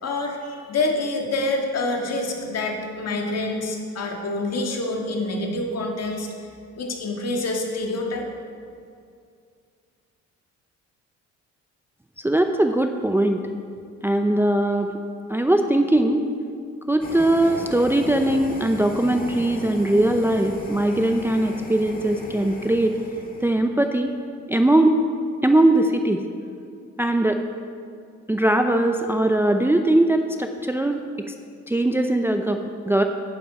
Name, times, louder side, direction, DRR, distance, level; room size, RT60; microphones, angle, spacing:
voice 1, 0.0-6.3 6.8-8.3, left 2 dB, 55° left, 1 dB, 1.8 m, -27 dB
voice 2, 12.2-13.4 14.0-14.9 15.3-16.3 16.9-23.0 23.4-24.1 24.5-25.0 25.4-26.2 27.0-27.4 28.3-31.3 31.7-33.0, right 1 dB, 10° right, 5 dB, 0.5 m, -20 dB
sound 1, 17.0-23.5, left 1 dB, 30° left, 1.8 m, -37 dB
10.5 x 9.8 x 4.2 m, 2.3 s
cardioid pair, 90°, 30 cm